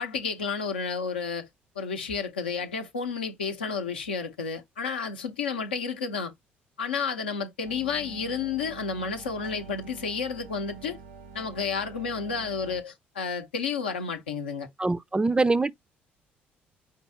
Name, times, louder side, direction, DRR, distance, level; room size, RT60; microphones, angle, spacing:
voice 1, 0.0-1.5 1.8-6.3 6.8-11.0 11.3-14.7, left 5 dB, 85° left, 0.6 m, -31 dB
sound 1, 7.6-12.8, right 6 dB, 80° right, 0.9 m, -46 dB
voice 2, 14.8-15.7, right 3 dB, 15° right, 0.4 m, -23 dB
5.2 x 2.7 x 3.2 m
figure-of-eight pair, 50°, 5 cm